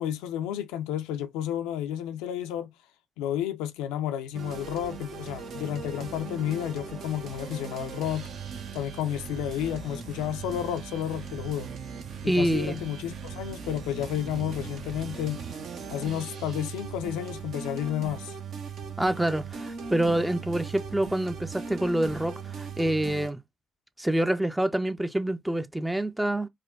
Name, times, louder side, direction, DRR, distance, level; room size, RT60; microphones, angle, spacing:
voice 1, 0.0-2.7 3.2-8.3 8.7-11.7 12.2-15.4 15.9-18.4, left 10 dB, 70° left, 0.3 m, -31 dB
sound 1, 4.3-23.3, right 6 dB, 55° right, 0.6 m, -39 dB
voice 2, 12.3-12.8 19.0-23.4 24.0-26.5, right 1 dB, 10° right, 0.4 m, -26 dB
4.9 x 2.2 x 2.3 m
figure-of-eight pair, 40°, 0 cm